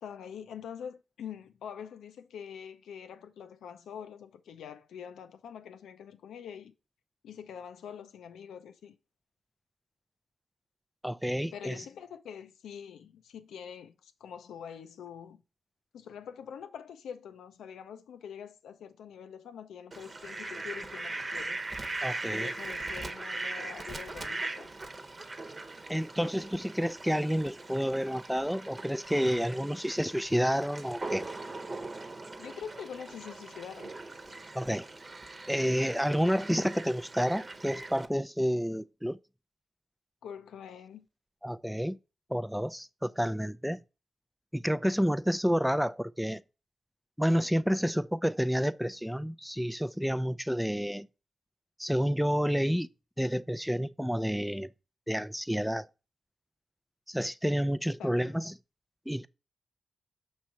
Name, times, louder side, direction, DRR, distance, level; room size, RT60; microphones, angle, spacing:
voice 1, 0.0-6.7 7.2-8.9 11.5-15.4 15.9-21.6 22.3-24.7 32.4-33.9 40.2-41.0 58.0-58.4, left 8 dB, 85° left, 0.6 m, -45 dB
voice 2, 11.0-11.8 22.0-22.5 25.9-31.3 34.5-34.9 35.5-39.2 41.4-42.0 42.3-43.8 44.5-46.4 47.2-51.1 51.8-52.9 53.2-54.7 55.1-55.9 57.1-58.5 59.1-59.3, equal, ahead, 0.5 m, -29 dB
Fowl, 19.9-38.1, right 2 dB, 40° right, 1.1 m, -40 dB
6.2 x 3.2 x 5.6 m
supercardioid pair, 40°, 0 cm